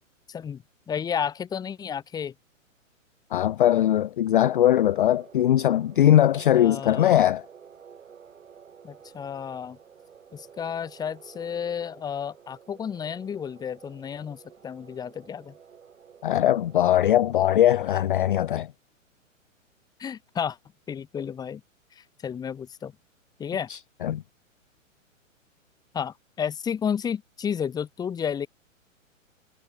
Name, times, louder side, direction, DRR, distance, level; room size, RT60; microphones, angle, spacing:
voice 1, 0.3-2.3 6.5-7.3 8.8-9.8 10.3-15.6 20.0-20.6 20.9-21.6 21.9-22.9 23.4-23.7 25.9-28.5, left 7 dB, 10° left, 1.0 m, -32 dB
voice 2, 3.3-7.4 16.2-18.7 23.7-24.2, left 12 dB, 40° left, 0.4 m, -21 dB
sound 1, 4.4-17.3, right 7 dB, 65° right, 5.2 m, -51 dB
figure-of-eight pair, 115°, 40 cm